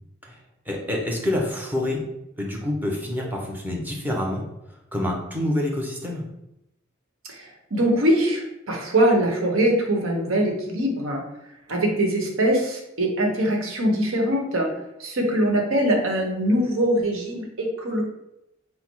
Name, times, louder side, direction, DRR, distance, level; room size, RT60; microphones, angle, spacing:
voice 1, 0.7-2.0 2.4-6.2, left 1 dB, 10° right, -2 dB, 0.8 m, -27 dB
voice 2, 7.4-11.2 11.7-14.7 15.0-18.0, right 1 dB, 85° right, 0 dB, 1.0 m, -22 dB
4.2 x 2.0 x 4.5 m, 0.86 s
head